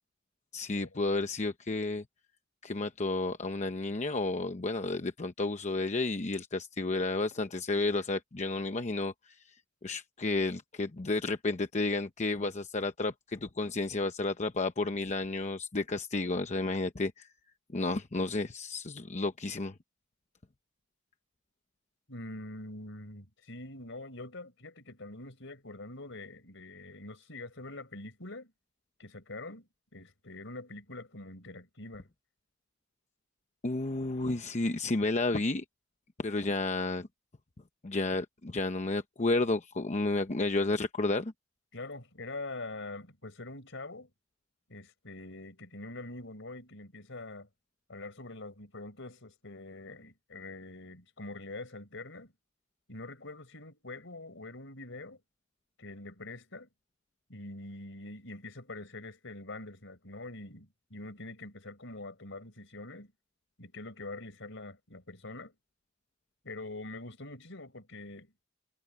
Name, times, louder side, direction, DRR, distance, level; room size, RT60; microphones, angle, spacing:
voice 1, 0.5-2.0 2.6-9.3 9.8-17.3 17.7-19.7 33.6-35.6 36.2-37.1 37.8-41.3, left 2 dB, 35° left, 0.9 m, -31 dB
voice 2, 22.1-28.5 29.0-32.1 41.7-44.1 44.7-47.5 47.9-52.3 52.9-55.2 55.8-56.7 57.3-63.1 63.6-65.5 66.4-68.3, left 2 dB, 70° left, 5.4 m, -44 dB
head